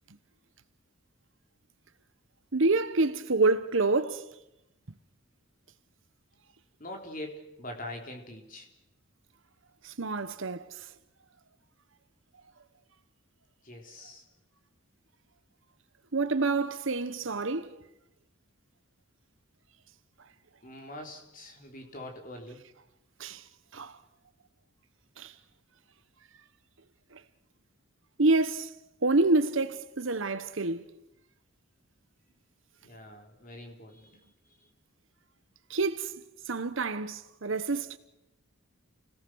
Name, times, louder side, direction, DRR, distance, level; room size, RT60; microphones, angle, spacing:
voice 1, 2.5-4.3 9.8-10.9 16.1-17.8 23.2-23.4 23.7-24.0 25.2-25.3 27.1-27.2 28.2-28.7 29.0-30.9 35.7-36.2 36.5-38.0, right 3 dB, 65° right, 1.1 m, -27 dB
voice 2, 6.8-8.7 13.6-14.2 20.6-22.6 32.8-34.2 34.6-34.7, left 1 dB, 40° left, 3.7 m, -43 dB
29.0 x 18.0 x 6.3 m
head